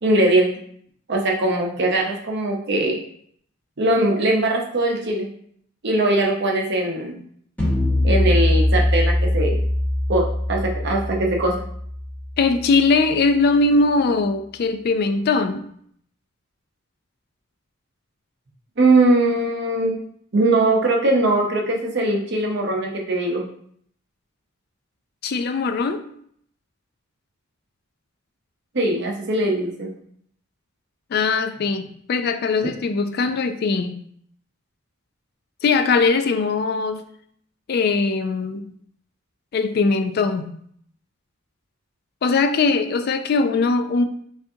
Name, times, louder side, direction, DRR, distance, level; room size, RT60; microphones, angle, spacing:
voice 1, 0.0-0.5 1.1-3.0 3.8-5.3 5.8-7.2 8.0-9.6 10.1-11.6 18.8-20.0 20.3-23.4 28.7-29.9, right 2 dB, 55° right, 0 dB, 0.7 m, -20 dB
sound 1, 7.6-12.9, left 1 dB, 10° left, 1.1 m, -22 dB
voice 2, 12.4-15.6 25.2-26.0 31.1-33.9 35.6-37.0 37.7-38.6 39.5-40.5 42.2-44.0, left 4 dB, 50° left, 8 dB, 0.3 m, -20 dB
4.9 x 2.5 x 2.7 m, 0.65 s
head